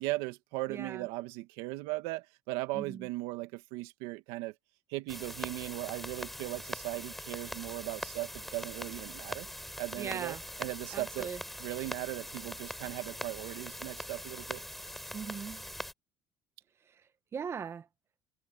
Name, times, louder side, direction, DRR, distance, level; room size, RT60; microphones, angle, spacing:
voice 1, 0.0-4.5 4.9-9.5 9.8-11.3 11.6-14.6, right 20 dB, 85° right, 1.8 m, -38 dB
voice 2, 0.7-1.0 2.7-3.1 10.0-10.4 10.9-11.4 15.1-15.6 17.3-17.9, right 6 dB, 30° right, 0.9 m, -39 dB
sound 1, 5.1-15.9, equal, ahead, 4.0 m, -42 dB
cardioid pair, 130°, 9 cm